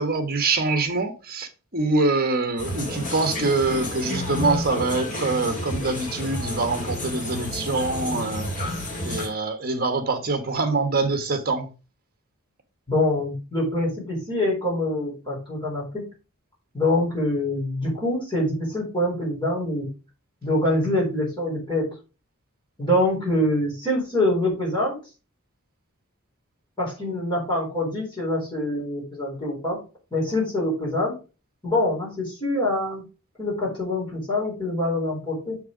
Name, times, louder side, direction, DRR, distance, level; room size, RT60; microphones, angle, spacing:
voice 1, 0.0-8.7 9.0-11.7, right 3 dB, 45° right, 1.4 m, -24 dB
sound 1, 2.6-9.3, left 1 dB, 40° left, 2.8 m, -31 dB
voice 2, 12.9-16.1 16.7-19.9 20.4-21.9 22.8-25.0 26.8-29.8 30.1-31.2 31.6-33.0 33.4-35.6, left 1 dB, 20° left, 4.0 m, -25 dB
6.9 x 4.7 x 5.0 m
head